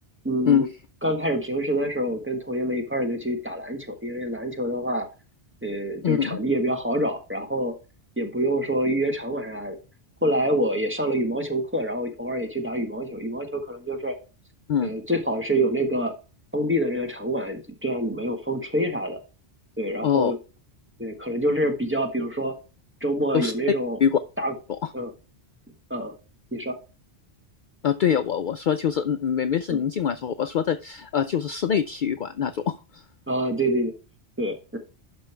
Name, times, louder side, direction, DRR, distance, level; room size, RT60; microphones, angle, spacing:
voice 1, 0.2-0.7 1.0-5.1 5.6-7.7 8.2-9.8 10.2-14.1 14.8-16.1 16.5-19.2 19.8-20.4 21.0-22.5 23.0-24.0 24.4-24.5 24.9-25.1 25.9-26.1 26.5-26.7 29.7-29.8 33.3-33.9 34.4-34.8, right 1 dB, 10° right, 4 dB, 1.4 m, -26 dB
voice 2, 6.0-6.4 14.7-15.0 20.0-20.3 23.3-23.5 24.0-24.2 24.7-24.9 27.8-33.0, left 8 dB, 55° left, 12 dB, 0.6 m, -24 dB
11.5 x 5.3 x 3.3 m, 0.33 s
omnidirectional pair, 1.1 m